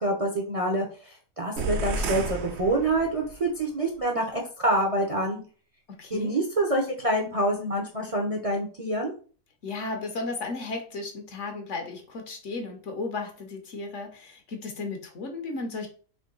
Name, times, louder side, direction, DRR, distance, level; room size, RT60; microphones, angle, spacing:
voice 1, 0.0-5.4 6.1-9.1, right 1 dB, 35° right, 0 dB, 0.6 m, -26 dB
sound 1, 1.6-3.4, right 2 dB, 60° right, 0.9 m, -31 dB
voice 2, 6.0-6.3 9.6-15.9, left 3 dB, 65° left, 4 dB, 1.3 m, -34 dB
3.8 x 3.1 x 3.8 m, 0.40 s
omnidirectional pair, 1.4 m